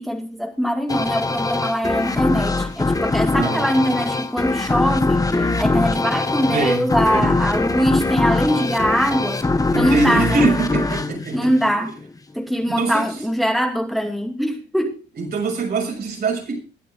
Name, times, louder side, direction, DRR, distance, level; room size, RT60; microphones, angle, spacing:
voice 1, 0.0-9.4 9.7-10.5 11.3-12.0 12.3-14.9, equal, ahead, 2.5 m, -22 dB
sound 1, 0.9-12.1, left 3 dB, 15° left, 1.5 m, -22 dB
voice 2, 3.3-3.7 6.5-6.8 7.1-7.3 9.7-11.5 12.7-13.1 15.2-16.6, right 4 dB, 55° right, 6.6 m, -23 dB
21.5 x 8.4 x 3.8 m
cardioid pair, 90°, 20 cm